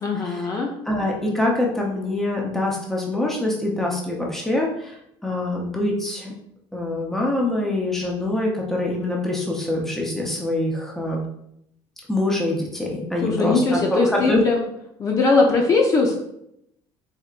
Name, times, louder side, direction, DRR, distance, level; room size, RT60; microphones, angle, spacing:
voice 1, 0.0-0.7 13.2-14.6 15.0-16.2, left 3 dB, 35° left, 0 dB, 0.6 m, -20 dB
voice 2, 0.9-4.9 5.2-6.3 6.7-11.2 12.1-14.4, left 1 dB, 5° left, -2 dB, 0.7 m, -24 dB
4.4 x 3.5 x 2.5 m, 0.76 s
cardioid pair, 150°, 10 cm